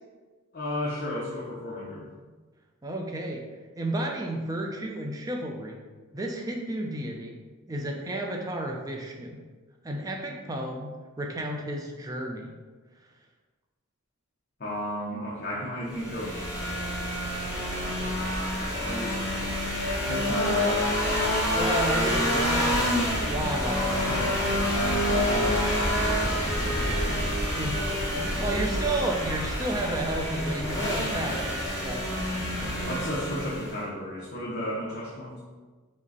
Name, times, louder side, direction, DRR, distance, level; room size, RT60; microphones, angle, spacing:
voice 1, 0.5-2.1 14.6-16.4 18.0-18.4 18.8-19.2 20.0-20.6 23.6-24.4 25.1-27.6 32.6-35.4, left 1 dB, 45° left, -6 dB, 0.7 m, -34 dB
voice 2, 2.8-3.4 3.8-5.8 6.1-7.4 7.7-9.4 9.8-10.9 11.2-12.5 21.5-24.4 27.5-27.8 28.2-32.0, right 1 dB, 15° right, 1 dB, 0.4 m, -32 dB
sound 1, 15.9-33.8, equal, 15° left, 1.1 m, -27 dB
5.1 x 2.1 x 4.0 m, 1.4 s
head